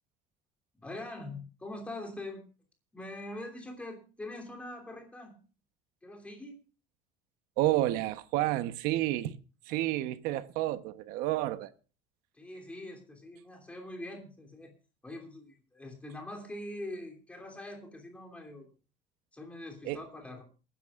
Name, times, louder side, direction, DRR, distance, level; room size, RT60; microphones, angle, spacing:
voice 1, 0.8-2.4 2.9-5.4 6.0-6.6 12.3-14.7 15.0-18.7 19.3-20.4, left 1 dB, 10° left, 3.0 m, -43 dB
voice 2, 7.6-9.4 9.7-11.7 19.8-20.0, right 15 dB, 85° right, 1.0 m, -30 dB
27.0 x 10.5 x 2.5 m
cardioid pair, 175°, 15 cm